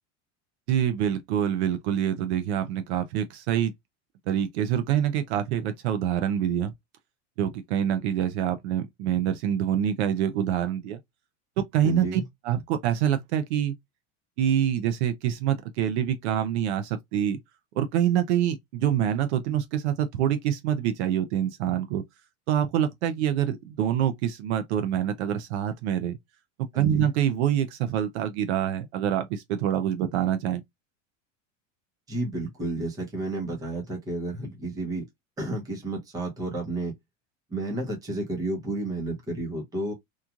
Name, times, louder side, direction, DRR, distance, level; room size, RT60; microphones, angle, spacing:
voice 1, 0.7-3.7 4.3-6.7 7.4-11.0 11.6-13.7 14.4-17.4 17.8-22.0 22.5-26.2 26.6-30.6, right 10 dB, 60° right, 0.5 m, -26 dB
voice 2, 11.8-12.2 26.7-27.0 32.1-35.1 35.4-36.9 37.5-39.9, right 2 dB, 10° right, 0.7 m, -31 dB
3.0 x 2.3 x 2.2 m
supercardioid pair, 175°, 38 cm